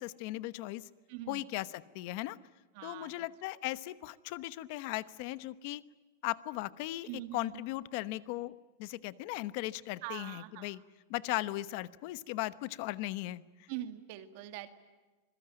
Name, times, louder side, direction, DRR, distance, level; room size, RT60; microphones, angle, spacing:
voice 1, 0.0-0.9 1.3-2.4 2.8-5.8 6.2-8.5 8.8-10.8 11.1-13.4, left 17 dB, 40° left, 16 dB, 1.0 m, -37 dB
voice 2, 1.1-1.5 2.8-3.2 7.0-7.6 10.0-10.7 13.7-14.7, right 14 dB, 45° right, 9 dB, 1.9 m, -43 dB
26.5 x 22.0 x 8.9 m, 1.2 s
supercardioid pair, 170°, 0 cm